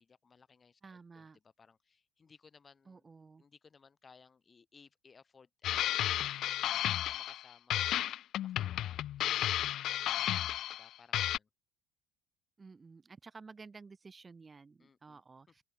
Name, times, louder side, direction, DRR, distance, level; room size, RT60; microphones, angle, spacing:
voice 1, 0.0-3.1 3.4-8.1 8.4-11.5 14.8-15.2, left 5 dB, 30° left, 6.2 m, -62 dB
voice 2, 0.8-1.4 2.9-3.4 12.6-15.6, right 4 dB, 25° right, 5.0 m, -53 dB
sound 1, 5.6-7.4 7.7-10.9 11.1-11.4, left 12 dB, 60° left, 0.5 m, -33 dB
open air
supercardioid pair, 95°, 0 cm